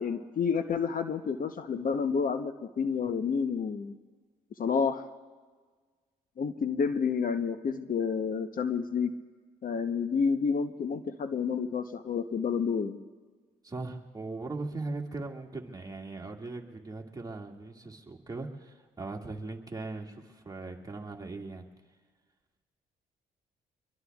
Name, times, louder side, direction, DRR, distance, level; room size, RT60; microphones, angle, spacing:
voice 1, 0.0-3.9 4.6-5.0 6.4-9.1 9.6-13.0, left 6 dB, 50° left, 9 dB, 0.9 m, -29 dB
voice 2, 13.6-21.6, right 3 dB, 20° right, 0 dB, 2.1 m, -39 dB
24.5 x 22.5 x 2.4 m, 1.5 s
supercardioid pair, 55°, 18 cm